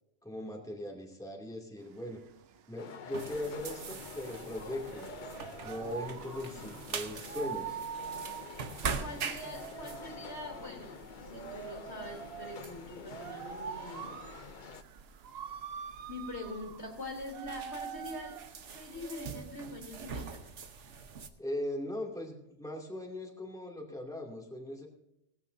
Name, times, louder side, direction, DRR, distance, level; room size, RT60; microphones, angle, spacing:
voice 1, 0.2-2.2 2.7-5.2 5.6-7.8 21.4-24.9, left 1 dB, 5° left, -1 dB, 2.5 m, -39 dB
sound 1, 1.8-19.8, right 8 dB, 65° right, 0.9 m, -45 dB
sound 2, 2.8-14.8, left 6 dB, 50° left, 0.7 m, -48 dB
sound 3, 3.1-21.3, right 5 dB, 85° right, 1.4 m, -44 dB
voice 2, 9.0-14.2 16.1-18.4 18.7-20.4, left 2 dB, 70° left, 0 dB, 3.5 m, -44 dB
18.5 x 14.5 x 2.7 m, 0.84 s
omnidirectional pair, 1.2 m